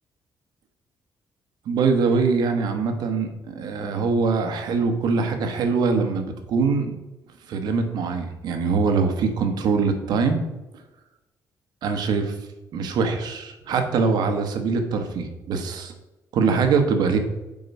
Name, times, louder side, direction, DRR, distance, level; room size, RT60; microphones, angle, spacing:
voice 1, 1.7-6.9 7.5-10.4 11.8-12.3 12.7-15.9 16.3-17.2, right 4 dB, 75° right, 6 dB, 1.3 m, -23 dB
7.7 x 4.8 x 5.5 m, 1.0 s
cardioid pair, 125°, 7 cm